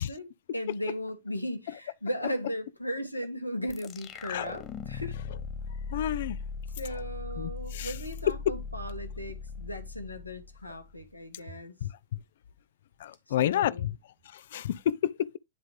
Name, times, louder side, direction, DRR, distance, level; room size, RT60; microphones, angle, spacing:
voice 1, 0.0-5.2 6.8-11.7 13.4-13.9, equal, 85° left, 1.3 m, -37 dB
sound 1, 3.7-11.0, left 5 dB, 30° left, 0.9 m, -39 dB
voice 2, 5.9-6.4 7.4-7.9 11.8-11.9 13.0-13.9 14.3-15.4, left 11 dB, 60° left, 0.3 m, -30 dB
9.5 x 3.7 x 3.2 m
figure-of-eight pair, 90°, 0 cm